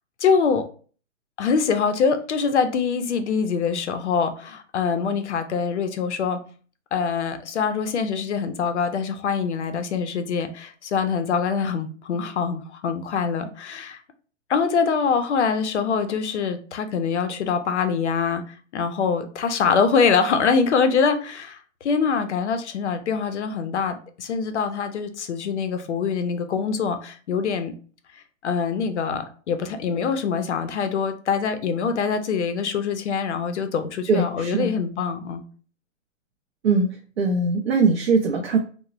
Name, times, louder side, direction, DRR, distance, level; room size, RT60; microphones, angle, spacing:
voice 1, 0.2-0.6 1.4-6.4 6.9-14.0 14.5-27.7 28.4-35.4, left 5 dB, 60° left, 0.5 m, -24 dB
voice 2, 34.1-34.7 36.6-36.9 37.2-38.6, right 4 dB, 55° right, 0.4 m, -21 dB
2.9 x 2.0 x 2.4 m
hypercardioid pair, 175°, 39 cm